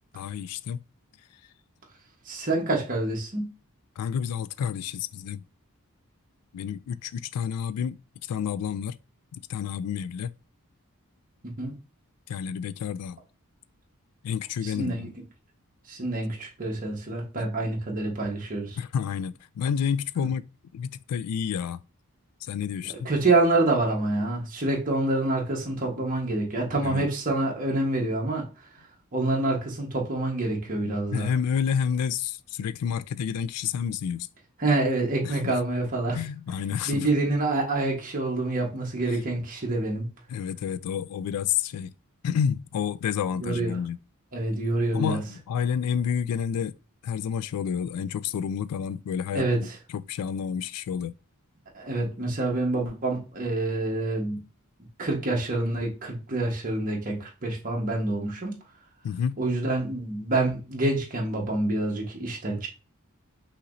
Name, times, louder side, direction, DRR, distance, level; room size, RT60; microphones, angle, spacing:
voice 1, 0.1-0.8 4.0-5.4 6.5-9.0 9.3-10.3 12.3-13.2 14.2-15.1 17.4-17.5 18.8-20.4 20.7-21.8 22.4-23.1 26.8-27.1 30.9-34.3 35.2-35.6 36.1-37.1 39.0-39.2 40.3-41.9 42.2-44.0 44.9-46.8 47.0-51.1 59.0-59.4, left 7 dB, 90° left, 0.3 m, -30 dB
voice 2, 2.2-3.5 11.4-11.7 14.6-15.1 15.9-18.8 22.8-28.4 29.1-31.3 34.6-36.2 36.9-40.1 43.4-43.8 44.3-45.2 49.3-49.7 51.7-54.4 55.0-58.5 59.4-62.7, right 2 dB, 40° right, 1.3 m, -27 dB
5.6 x 2.9 x 2.6 m
head